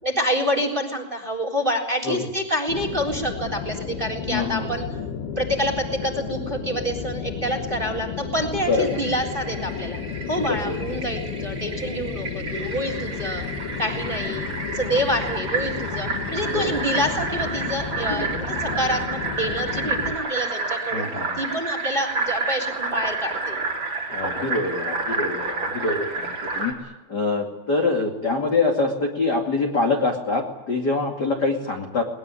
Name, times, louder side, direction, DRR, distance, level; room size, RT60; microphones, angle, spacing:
voice 1, 0.0-4.8 5.3-10.0 10.3-13.4 13.8-14.5 14.7-21.1 21.4-23.6, equal, 10° right, 3 dB, 3.4 m, -27 dB
sound 1, 2.7-20.2, left 6 dB, 65° left, 3.4 m, -32 dB
voice 2, 4.3-4.7 8.7-9.0 10.3-10.8 16.5-16.7 18.1-18.3 18.7-18.8 20.9-21.4 24.1-26.7 27.1-32.0, left 3 dB, 30° left, 0 dB, 2.0 m, -25 dB
Fill (with liquid), 8.7-26.7, right 3 dB, 30° right, 4.1 m, -30 dB
21.0 x 21.0 x 10.0 m, 1.1 s
omnidirectional pair, 5.2 m